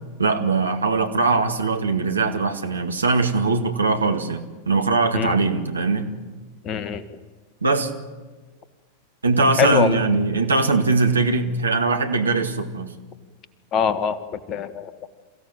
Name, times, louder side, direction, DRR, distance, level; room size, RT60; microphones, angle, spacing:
voice 1, 0.2-6.1 7.6-7.9 9.2-12.9, right 3 dB, 75° right, 6 dB, 2.0 m, -21 dB
voice 2, 6.6-7.0 9.6-10.0 13.7-15.1, left 8 dB, 30° left, 14 dB, 1.5 m, -23 dB
27.5 x 16.0 x 9.1 m, 1.3 s
figure-of-eight pair, 90°, 0 cm